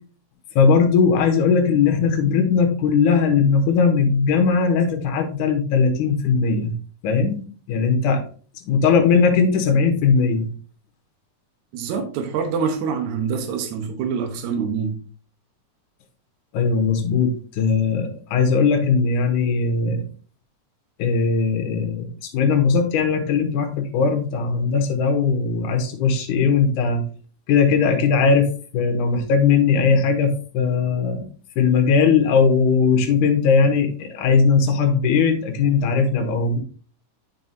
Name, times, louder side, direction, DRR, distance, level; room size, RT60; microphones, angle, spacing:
voice 1, 0.6-6.7 7.0-8.2 8.7-10.5 16.5-20.0 21.0-27.0 27.5-28.5 28.7-31.3 31.6-36.6, left 5 dB, 75° left, 5 dB, 2.5 m, -19 dB
voice 2, 11.7-15.0, right 6 dB, 70° right, 5 dB, 2.3 m, -25 dB
8.8 x 5.9 x 2.7 m, 0.41 s
omnidirectional pair, 3.7 m